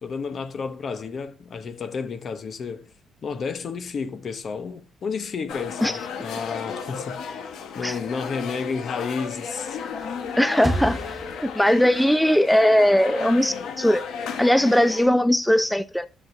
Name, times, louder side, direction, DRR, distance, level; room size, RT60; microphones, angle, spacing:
voice 1, 0.0-2.9 3.2-7.4 7.7-9.8, left 5 dB, 50° left, 0.9 m, -31 dB
sound 1, 5.5-15.1, left 6 dB, 80° left, 1.2 m, -34 dB
sound 2, 9.7-12.1, right 1 dB, 15° right, 1.5 m, -33 dB
sound 3, 9.9-11.9, left 4 dB, 30° left, 1.3 m, -39 dB
voice 2, 10.4-11.0 11.4-14.0 14.4-16.1, equal, 5° left, 0.4 m, -19 dB
11.5 x 7.3 x 2.7 m
cardioid pair, 90°, 0 cm